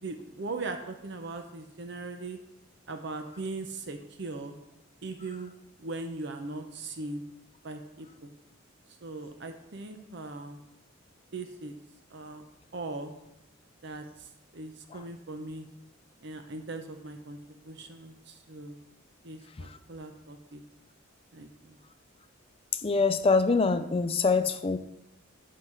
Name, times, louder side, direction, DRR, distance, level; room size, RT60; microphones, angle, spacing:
voice 1, 0.0-2.4 2.9-4.5 5.0-5.5 5.8-7.2 7.6-8.3 9.0-10.6 11.3-11.7 12.1-13.1 13.8-15.7 16.2-17.4 17.6-18.8 19.2-20.6 21.3-21.8, right 3 dB, 60° right, 6 dB, 0.7 m, -39 dB
voice 2, 22.8-24.8, left 4 dB, 30° left, 10 dB, 0.4 m, -24 dB
7.7 x 4.7 x 5.9 m, 0.87 s
head